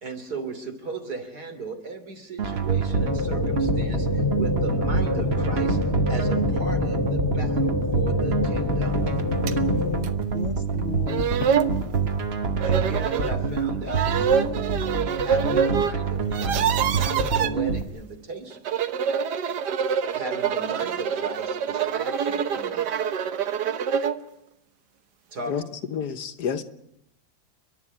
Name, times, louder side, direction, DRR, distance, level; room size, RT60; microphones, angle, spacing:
voice 1, 0.0-5.8 6.1-9.0 12.6-14.1 15.2-18.6 20.1-23.0 25.3-25.5, right 3 dB, 70° right, 3.6 m, -36 dB
sound 1, 2.4-17.8, right 5 dB, 40° right, 1.4 m, -27 dB
sound 2, 2.9-10.0, left 3 dB, 20° left, 0.8 m, -26 dB
voice 2, 9.0-11.3, left 8 dB, 55° left, 1.2 m, -33 dB
sound 3, 9.5-9.6 10.0-10.1 10.8-10.9 11.1-11.7 12.6-13.3 13.9-15.9 16.2-17.5 18.5-24.2, right 7 dB, 85° right, 1.6 m, -25 dB
voice 3, 25.9-26.6, left 7 dB, 75° left, 1.7 m, -29 dB
30.0 x 11.5 x 9.9 m
omnidirectional pair, 1.8 m